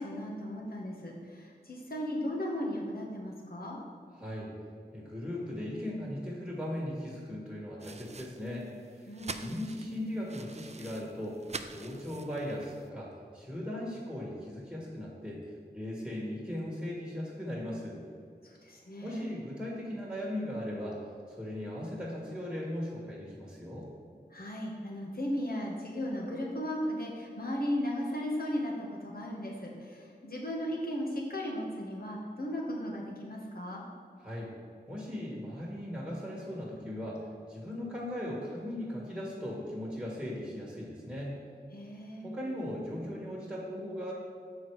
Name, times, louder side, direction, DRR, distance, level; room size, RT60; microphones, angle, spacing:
voice 1, 0.0-3.8 9.1-9.6 18.4-19.3 24.3-33.8 41.7-42.3, equal, 60° left, -2 dB, 1.4 m, -36 dB
voice 2, 4.1-4.5 4.9-9.1 9.4-11.4 11.7-15.4 15.7-18.0 19.0-21.0 21.3-23.9 34.2-34.5 34.9-41.3 42.2-44.1, left 1 dB, 5° right, -6 dB, 1.8 m, -38 dB
sound 1, 7.8-12.9, right 4 dB, 40° right, 0.4 m, -46 dB
6.7 x 4.8 x 4.8 m, 2.3 s
wide cardioid pair, 45°, 18 cm